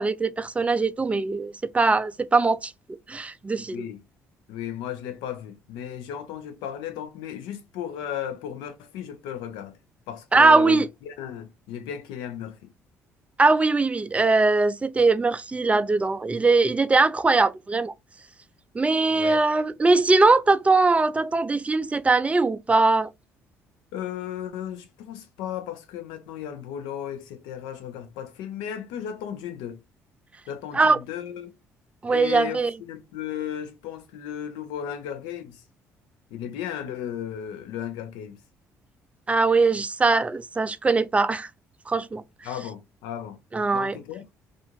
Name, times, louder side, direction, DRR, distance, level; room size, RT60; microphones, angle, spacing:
voice 1, 0.0-2.7 3.1-3.9 10.3-10.9 13.4-17.9 18.7-23.1 30.7-31.0 32.0-32.7 39.3-41.5 41.9-42.2 43.5-44.0, right 3 dB, 15° right, 0.4 m, -21 dB
voice 2, 3.6-4.0 4.5-9.7 10.1-12.7 19.1-19.4 23.9-29.8 30.5-31.5 32.1-35.6 36.3-38.4 42.4-43.4 43.7-44.2, left 9 dB, 75° left, 0.6 m, -35 dB
2.5 x 2.4 x 2.9 m
hypercardioid pair, 55°, 7 cm